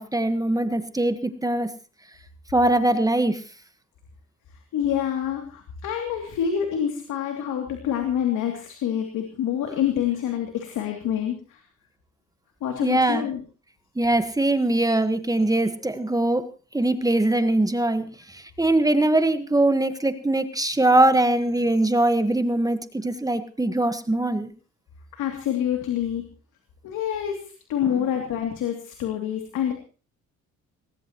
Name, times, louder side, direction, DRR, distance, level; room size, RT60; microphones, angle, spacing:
voice 1, 0.0-1.7 2.5-3.4 12.8-13.3 14.0-16.4 16.7-18.1 18.6-24.5, right 2 dB, 10° right, 9 dB, 1.4 m, -22 dB
voice 2, 4.7-11.6 12.6-13.4 25.1-26.2 26.8-29.7, left 9 dB, 85° left, 3 dB, 2.8 m, -27 dB
20.0 x 18.5 x 3.1 m, 0.37 s
cardioid pair, 90°, 30 cm